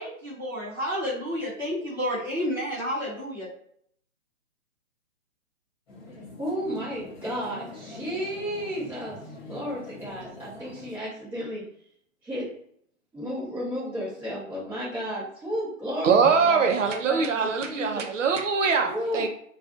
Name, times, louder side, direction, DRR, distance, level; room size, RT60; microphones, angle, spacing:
voice 1, 0.0-3.5, equal, 15° left, -13 dB, 0.4 m, -30 dB
sound 1, 5.9-11.0, left 2 dB, 45° left, 1.1 m, -44 dB
voice 2, 6.4-9.2 9.5-11.6 12.2-12.5 13.1-16.7 17.1-18.1 18.9-19.3, equal, 5° right, -11 dB, 0.8 m, -33 dB
voice 3, 16.0-19.3, right 5 dB, 60° right, 5 dB, 0.5 m, -23 dB
2.4 x 2.3 x 2.4 m, 0.66 s
hypercardioid pair, 150°, 42 cm